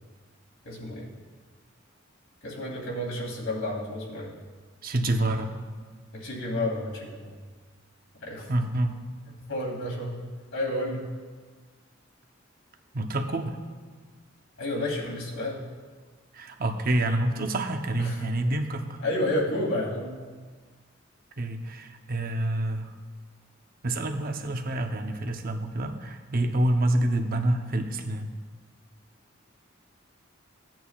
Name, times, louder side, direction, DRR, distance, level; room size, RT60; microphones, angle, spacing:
voice 1, 0.6-1.1 2.4-4.3 6.1-7.4 8.2-8.5 9.3-10.2 10.5-11.0 14.6-15.6 18.0-18.2 19.0-20.2, left 1 dB, 75° left, -3 dB, 2.5 m, -31 dB
voice 2, 4.8-5.5 8.5-8.9 12.9-13.6 16.3-18.9 21.4-22.9 23.8-28.3, right 1 dB, 45° right, 5 dB, 0.8 m, -27 dB
15.5 x 9.1 x 2.4 m, 1.5 s
head